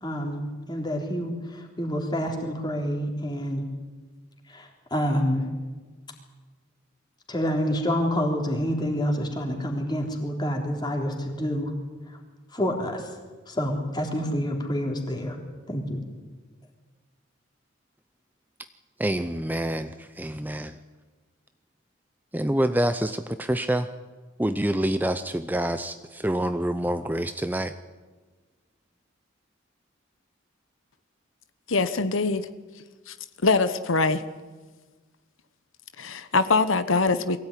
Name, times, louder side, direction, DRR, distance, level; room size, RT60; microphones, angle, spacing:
voice 1, 0.0-3.7 4.5-5.4 7.3-11.7 12.5-13.1 13.5-15.4 15.7-16.0, equal, 20° left, 2 dB, 3.7 m, -28 dB
voice 2, 19.0-20.7 22.3-23.9 24.4-27.7, right 1 dB, 10° right, 10 dB, 0.6 m, -27 dB
voice 3, 31.7-32.5 33.1-33.2 33.4-34.2 36.0-37.4, left 3 dB, 80° left, 12 dB, 1.1 m, -23 dB
22.5 x 16.5 x 10.0 m, 1.3 s
head